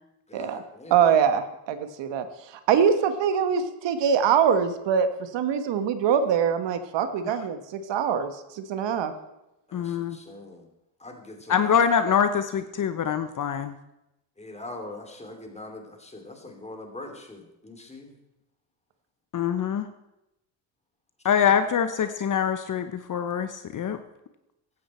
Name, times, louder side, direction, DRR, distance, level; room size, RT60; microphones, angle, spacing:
voice 1, 0.3-1.0 9.7-10.7 11.0-11.8 14.4-18.2 21.4-21.5, left 2 dB, 15° left, 3 dB, 3.1 m, -42 dB
voice 2, 0.9-2.3 2.7-5.1 5.3-9.1, right 7 dB, 65° right, 9 dB, 1.4 m, -23 dB
voice 3, 9.7-10.2 11.5-13.7 19.3-19.9 21.2-24.0, left 7 dB, 40° left, 10 dB, 0.9 m, -24 dB
15.5 x 11.5 x 4.4 m, 0.91 s
cardioid pair, 95°, 47 cm